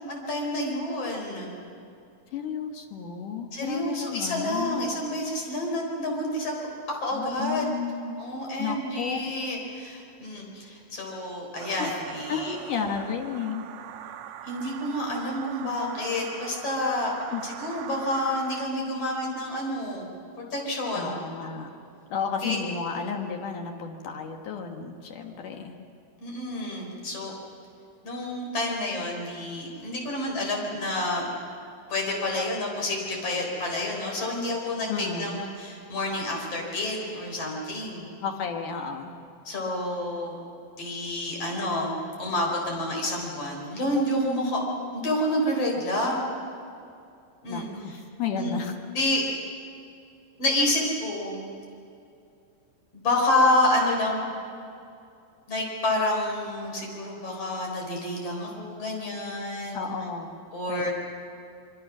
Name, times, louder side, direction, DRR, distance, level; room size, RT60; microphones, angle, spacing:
voice 1, 0.1-1.6 3.5-6.6 7.0-7.7 8.2-12.6 14.4-17.1 17.4-20.1 20.4-21.2 22.4-22.6 26.2-27.3 28.0-31.2 31.9-38.1 39.4-40.4 40.8-41.9 42.2-44.6 44.9-46.2 47.4-47.7 48.4-48.5 48.9-49.4 50.4-51.5 52.9-54.3 55.5-59.9 60.5-60.9, left 1 dB, 30° left, 0 dB, 4.8 m, -28 dB
voice 2, 2.3-4.9 7.1-8.2 8.6-9.2 11.8-12.0 12.3-13.6 17.3-17.4 21.0-21.7 22.1-25.8 34.9-35.4 38.2-39.2 47.5-48.8 59.7-60.4 60.7-60.9, left 6 dB, 70° left, 3 dB, 2.0 m, -32 dB
sound 1, 11.6-18.7, right 9 dB, 85° right, 2.2 m, -42 dB
25.0 x 24.0 x 6.2 m, 2.6 s
omnidirectional pair, 5.6 m